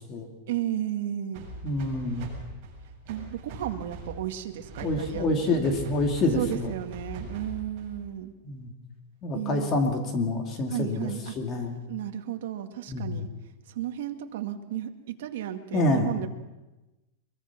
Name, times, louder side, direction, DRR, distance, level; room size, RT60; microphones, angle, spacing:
voice 1, 0.5-1.5 3.1-5.6 6.4-8.3 9.3-9.7 10.7-11.3 11.9-13.3 13.7-16.3, right 11 dB, 60° right, 5 dB, 2.1 m, -33 dB
sound 1, 1.3-8.1, right 2 dB, 35° right, 7.2 m, -42 dB
voice 2, 1.6-2.3 4.8-6.7 8.4-8.7 9.2-11.1 11.4-11.8 12.9-13.2 15.7-16.1, left 2 dB, 25° left, 4 dB, 2.5 m, -27 dB
23.0 x 22.5 x 6.0 m, 1.1 s
supercardioid pair, 175°, 0 cm